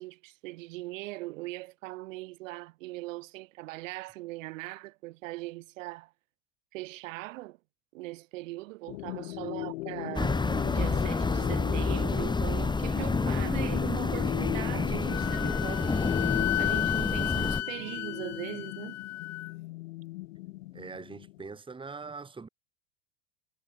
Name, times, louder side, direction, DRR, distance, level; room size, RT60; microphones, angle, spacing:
voice 1, 0.0-6.1 6.7-7.6 7.9-16.0 16.6-19.0, right 20 dB, 70° right, 3.6 m, -40 dB
sound 1, 8.9-21.5, left 19 dB, 75° left, 2.7 m, -38 dB
voice 2, 9.4-9.7 20.7-22.5, right 4 dB, 10° right, 2.2 m, -43 dB
sound 2, 10.1-17.6, left 3 dB, 10° left, 2.5 m, -29 dB
Wind instrument woodwind instrument, 15.1-19.5, left 14 dB, 40° left, 3.4 m, -33 dB
hypercardioid pair, 110°, 40 cm